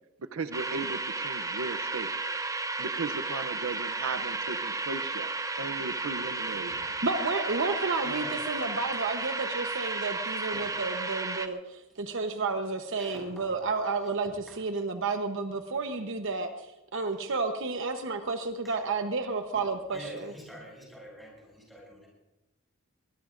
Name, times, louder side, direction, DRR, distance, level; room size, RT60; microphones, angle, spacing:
voice 1, 0.3-2.1 2.8-5.3 5.6-7.0, right 4 dB, 85° right, 9 dB, 0.6 m, -36 dB
sound 1, 0.5-11.5, right 3 dB, 15° right, 0.6 m, -33 dB
voice 2, 7.0-16.5 16.9-20.3, right 3 dB, 65° right, 6 dB, 0.9 m, -31 dB
voice 3, 8.0-8.4 10.5-10.7 11.2-11.3 12.9-13.6 14.0-14.6 18.6-18.8 19.5-22.1, equal, ahead, -3 dB, 7.3 m, -47 dB
22.5 x 20.5 x 2.6 m, 0.96 s
head